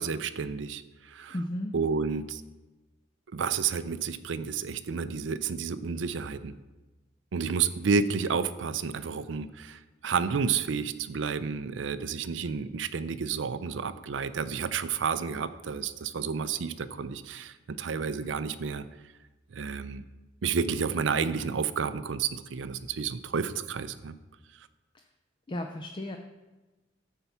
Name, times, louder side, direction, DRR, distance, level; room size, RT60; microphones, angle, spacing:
voice 1, 0.0-1.4 1.7-2.4 3.3-6.5 7.3-18.8 19.5-20.0 20.4-24.1, right 6 dB, 80° right, 13 dB, 0.5 m, -31 dB
voice 2, 1.3-1.7 25.5-26.2, left 1 dB, 25° left, 4 dB, 0.5 m, -34 dB
9.9 x 4.6 x 6.9 m, 1.2 s
head